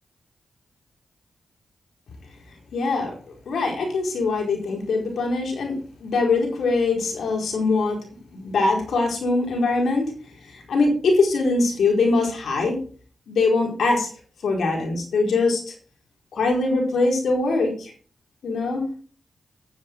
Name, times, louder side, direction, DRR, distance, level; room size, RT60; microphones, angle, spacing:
voice 1, 2.7-3.1 3.5-8.0 8.3-10.1 10.5-12.8 13.3-14.1 14.4-15.7 16.3-17.9 18.4-18.9, left 3 dB, 75° left, 1 dB, 4.4 m, -22 dB
13.0 x 9.9 x 4.6 m, 0.41 s
supercardioid pair, 45°, 0 cm